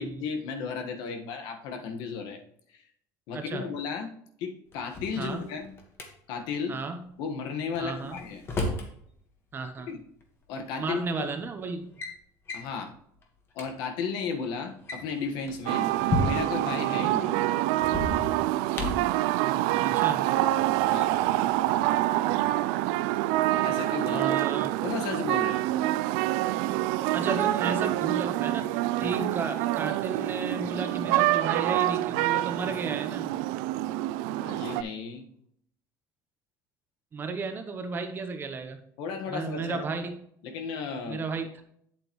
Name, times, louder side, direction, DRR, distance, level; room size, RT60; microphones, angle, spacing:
voice 1, 0.0-2.4 2.7-2.9 3.3-4.1 4.4-5.7 6.3-6.7 7.2-8.4 9.9-10.0 10.5-11.3 12.5-12.9 13.5-15.9 16.2-17.4 20.9-21.1 23.5-24.3 24.8-25.6 28.9-29.2 34.4-35.2 39.0-39.9 40.4-41.2, left 5 dB, 70° left, 5 dB, 1.5 m, -34 dB
Drawer open or close, 4.7-6.1 7.7-8.9 10.2-10.3 11.1-11.4 11.7-12.1 12.5-12.7 13.2-13.3 13.5-13.7 14.7-16.7 17.8-19.1, left 2 dB, 30° left, 1.6 m, -33 dB
voice 2, 6.7-7.0 7.8-8.2 9.5-9.9 10.8-11.9 16.9-17.1 19.7-20.2 24.1-24.7 27.1-33.3 37.1-38.8 39.3-40.1 41.1-41.6, right 4 dB, 25° right, 7 dB, 0.9 m, -33 dB
sound 1, 15.7-34.8, right 15 dB, 90° right, 0.4 m, -26 dB
8.5 x 8.0 x 3.1 m, 0.69 s
cardioid pair, 150°, 8 cm